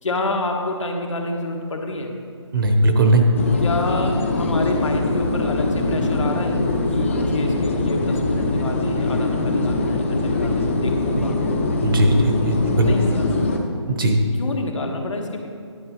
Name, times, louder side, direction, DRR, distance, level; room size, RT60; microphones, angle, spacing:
voice 1, 0.0-2.1 3.6-11.4 12.8-13.5 14.4-15.5, left 2 dB, 80° left, 2 dB, 1.1 m, -28 dB
voice 2, 2.5-3.3 11.8-12.9 13.9-14.2, right 2 dB, 45° right, 3 dB, 0.9 m, -18 dB
sound 1, 3.3-13.6, left 2 dB, 25° left, 0.5 m, -22 dB
10.5 x 6.7 x 3.0 m, 2.4 s
hypercardioid pair, 165°, 16 cm